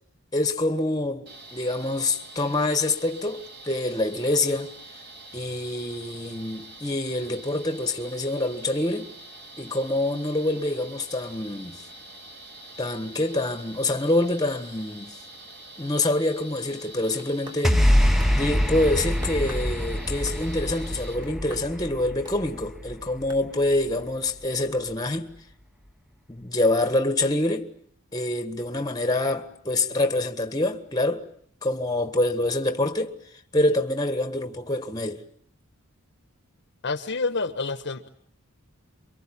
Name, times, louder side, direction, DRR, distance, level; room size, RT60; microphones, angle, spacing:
voice 1, 0.3-4.7 5.3-9.1 9.6-11.8 12.8-15.2 15.8-17.9 18.3-25.3 26.3-27.7 28.1-31.3 31.6-33.2 33.5-35.2, left 2 dB, 15° left, 1.6 m, -26 dB
sound 1, 1.3-21.1, right 2 dB, 45° right, 4.8 m, -45 dB
sound 2, 17.2-17.9 18.2-18.4 19.2-19.7 20.3-20.6 21.2-21.7 22.2-22.4 23.3-23.4, equal, 20° right, 2.8 m, -44 dB
sound 3, 17.6-24.1, equal, ahead, 1.1 m, -25 dB
voice 2, 36.8-38.1, left 3 dB, 50° left, 1.3 m, -28 dB
28.0 x 24.0 x 8.8 m
head